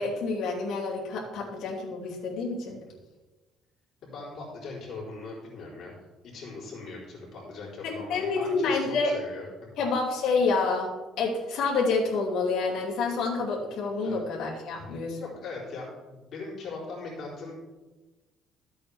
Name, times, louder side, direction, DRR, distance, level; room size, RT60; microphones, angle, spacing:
voice 1, 0.0-2.8 7.8-9.1 9.8-10.9 11.2-15.2, left 4 dB, 65° left, -5 dB, 2.7 m, -28 dB
voice 2, 4.0-5.9 6.2-9.5 14.0-14.2 14.7-14.8 15.1-17.5, left 3 dB, 50° left, -5 dB, 3.8 m, -40 dB
14.0 x 8.4 x 3.5 m, 1.2 s
cardioid pair, 165°, 0 cm